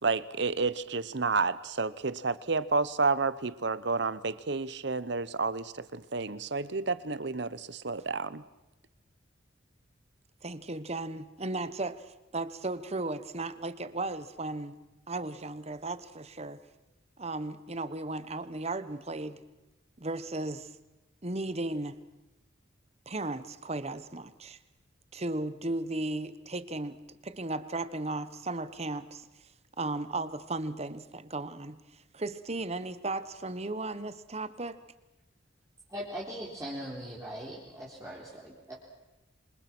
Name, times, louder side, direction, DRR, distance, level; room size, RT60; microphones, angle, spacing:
voice 1, 0.0-8.4, right 4 dB, 60° right, 16 dB, 0.9 m, -30 dB
voice 2, 10.4-14.7 15.1-16.6 17.2-19.4 20.0-20.7 21.2-22.0 23.1-24.6 25.1-27.0 27.2-29.5 29.8-34.8, right 2 dB, 35° right, 13 dB, 1.2 m, -35 dB
voice 3, 35.9-38.7, equal, 15° right, -6 dB, 3.9 m, -40 dB
26.5 x 26.5 x 6.2 m, 1.0 s
head